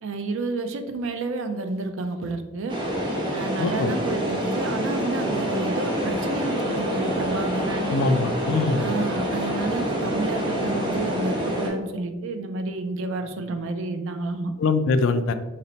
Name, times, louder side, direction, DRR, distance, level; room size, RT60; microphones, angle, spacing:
voice 1, 0.0-2.8 3.3-8.0 8.7-14.5, right 3 dB, 70° right, 7 dB, 0.4 m, -30 dB
sound 1, 2.7-11.7, equal, 25° right, 0.8 m, -26 dB
voice 2, 3.6-3.9 7.9-8.8 14.6-15.3, left 4 dB, 70° left, 9 dB, 0.3 m, -23 dB
4.0 x 2.1 x 3.9 m, 1.2 s
head